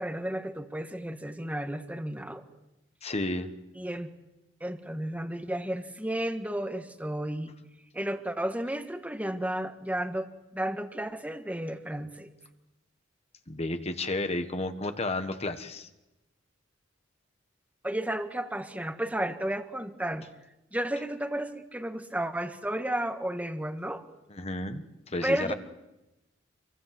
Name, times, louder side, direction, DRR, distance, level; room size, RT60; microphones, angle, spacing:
voice 1, 0.0-2.4 3.7-4.1 4.6-7.5 7.9-12.3 17.8-20.3 20.7-24.0 25.2-25.5, right 1 dB, 10° right, 7 dB, 1.6 m, -33 dB
voice 2, 3.0-3.5 13.5-15.9 24.3-25.5, left 2 dB, 35° left, 8 dB, 1.5 m, -32 dB
28.0 x 23.5 x 7.8 m, 0.95 s
head